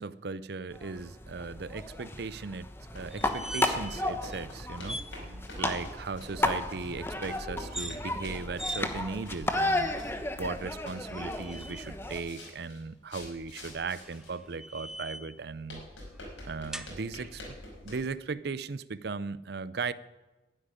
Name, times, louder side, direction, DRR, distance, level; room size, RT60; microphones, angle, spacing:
voice 1, 0.0-9.9 10.4-15.8 16.5-17.6 17.8-19.9, right 4 dB, 60° right, 0.5 m, -37 dB
sound 1, 0.7-12.2, left 2 dB, 10° left, 1.0 m, -34 dB
sound 2, 1.8-2.2 2.9-11.0 11.3-14.5 14.9-15.0 15.7-18.0, left 1 dB, 90° left, 5.2 m, -46 dB
sound 3, 3.1-4.0 4.3-4.4 4.8-5.1 7.6-8.0 8.6-8.8 9.5-10.1 11.1-11.9 13.8-15.4 16.7-16.9, right 1 dB, 5° right, 0.6 m, -41 dB
12.0 x 10.0 x 9.9 m
head